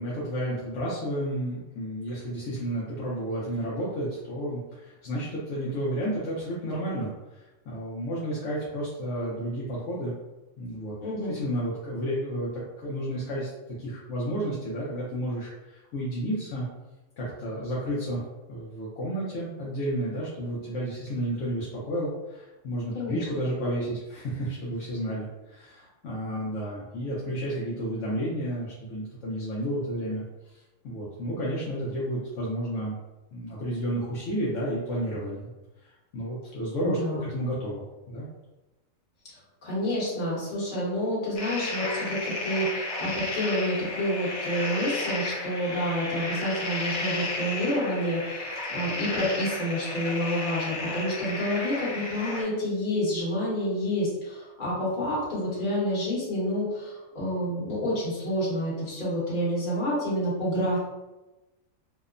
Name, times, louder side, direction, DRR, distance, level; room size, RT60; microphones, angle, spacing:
voice 1, 0.0-10.1 10.6-10.9 11.3-13.5 13.8-16.7 17.2-18.2 18.5-33.0 33.3-35.5 35.8-38.3, equal, 70° left, -7 dB, 0.9 m, -31 dB
voice 2, 11.0-11.3 22.9-23.2 36.8-37.2 39.3-60.8, equal, 40° left, -8 dB, 1.1 m, -29 dB
sound 1, 41.4-52.4, left 2 dB, 55° left, 0.6 m, -33 dB
2.8 x 2.0 x 2.4 m, 1.1 s
omnidirectional pair, 1.4 m